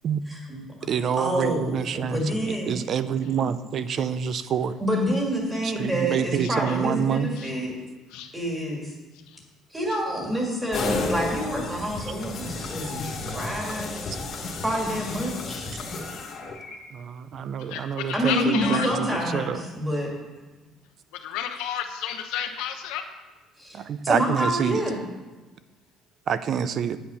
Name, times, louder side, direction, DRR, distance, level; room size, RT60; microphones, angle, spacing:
voice 1, 0.3-0.9 1.2-2.8 4.8-7.7 8.3-8.9 9.7-14.0 14.6-15.8 18.1-20.1 23.6-25.0, equal, 5° right, -1 dB, 1.9 m, -28 dB
voice 2, 0.9-4.8 5.6-7.3 14.1-14.2 16.9-19.1 19.3-19.6 23.7-24.8 26.3-27.0, right 7 dB, 35° right, 13 dB, 0.4 m, -27 dB
sound 1, 10.7-16.7, left 3 dB, 35° left, 1.4 m, -32 dB
voice 3, 17.7-18.9 21.2-23.0, left 9 dB, 90° left, 5 dB, 0.9 m, -31 dB
8.6 x 8.4 x 5.6 m, 1.2 s
cardioid pair, 175°, 0 cm